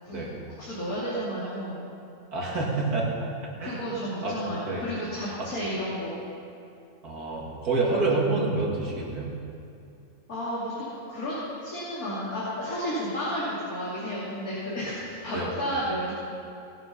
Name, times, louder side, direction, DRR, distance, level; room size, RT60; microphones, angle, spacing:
voice 1, 0.5-1.9 3.6-6.2 10.3-11.3 11.6-16.1, equal, 70° left, -9 dB, 3.3 m, -32 dB
voice 2, 2.3-3.8 4.2-4.3 4.6-4.8 7.0-9.3 15.3-15.5, right 3 dB, 90° right, -3 dB, 3.0 m, -28 dB
19.0 x 9.3 x 5.7 m, 2.5 s
omnidirectional pair, 1.6 m